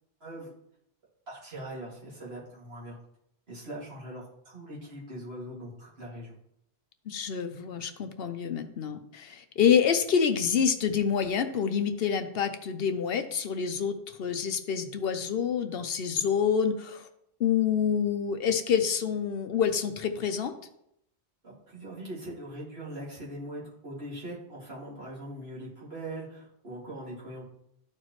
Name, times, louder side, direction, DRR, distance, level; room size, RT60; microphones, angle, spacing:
voice 1, 0.2-0.5 1.3-2.9 3.5-6.3 21.4-27.4, right 1 dB, 65° right, -6 dB, 2.6 m, -41 dB
voice 2, 7.1-17.1 17.4-20.5, left 7 dB, 65° left, 8 dB, 0.8 m, -27 dB
12.5 x 4.5 x 3.1 m, 0.76 s
omnidirectional pair, 1.1 m